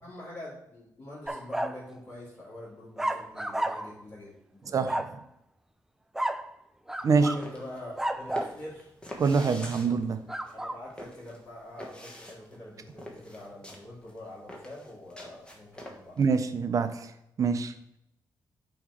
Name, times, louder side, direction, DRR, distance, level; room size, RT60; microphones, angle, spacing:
voice 1, 0.0-4.7 7.1-8.9 10.5-16.2, left 1 dB, 30° left, -9 dB, 2.6 m, -45 dB
sound 1, 1.3-1.8 3.0-4.0 4.9-5.2 6.2-6.5 6.9-7.5 8.0-8.6 10.3-10.8, right 1 dB, 5° right, 0.3 m, -32 dB
voice 2, 4.7-5.1 7.0-7.3 9.2-10.2 16.2-17.1 17.4-17.7, right 5 dB, 45° right, 10 dB, 0.6 m, -25 dB
sound 2, 7.0-16.3, left 1 dB, 10° left, 1.2 m, -45 dB
8.5 x 3.2 x 4.9 m, 0.80 s
cardioid pair, 120°, 8 cm